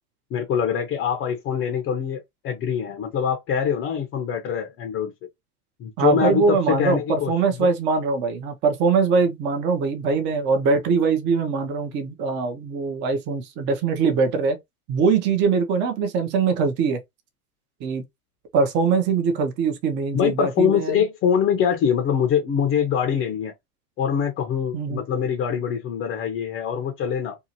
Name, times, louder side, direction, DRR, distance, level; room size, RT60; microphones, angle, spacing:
voice 1, 0.3-5.1 5.8-7.3 7.6-7.7 20.1-23.5 24.0-27.4, left 8 dB, 25° left, 0.6 m, -24 dB
voice 2, 6.0-14.6 14.9-17.0 17.8-18.0 18.5-21.0 24.7-25.0, right 5 dB, 25° right, 0.6 m, -22 dB
2.7 x 2.4 x 2.8 m
hypercardioid pair, 115°, 47 cm